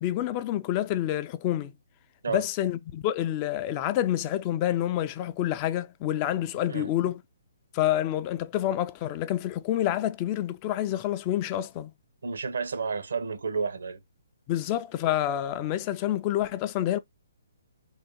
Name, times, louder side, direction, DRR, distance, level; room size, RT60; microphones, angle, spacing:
voice 1, 0.0-1.7 2.3-7.2 7.7-11.9 14.5-17.0, left 12 dB, 30° left, 0.3 m, -28 dB
voice 2, 12.2-14.0, right 5 dB, 65° right, 0.5 m, -31 dB
3.5 x 2.1 x 2.9 m
figure-of-eight pair, 135°, 0 cm